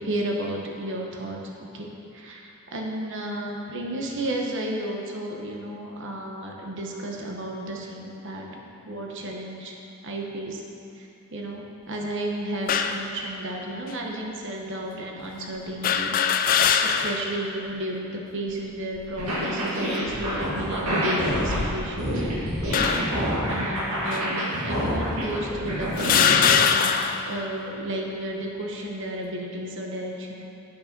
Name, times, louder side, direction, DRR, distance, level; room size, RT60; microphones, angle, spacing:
voice 1, 0.0-9.7 10.0-10.6 10.9-16.2 16.4-22.1 22.8-23.1 23.5-26.9 27.2-30.4, right 1 dB, 55° right, 0 dB, 1.0 m, -33 dB
sound 1, 12.7-13.1 13.9-14.0 15.8-17.3 17.7-17.8 19.0-19.4 20.1-20.3 21.3-22.1 22.7-23.2 24.1-24.2 25.1-25.2 26.0-27.3, left 7 dB, 40° left, 0.3 m, -23 dB
sound 2, 19.2-26.5, equal, 80° right, 1.9 m, -27 dB
9.4 x 5.4 x 5.2 m, 2.7 s
head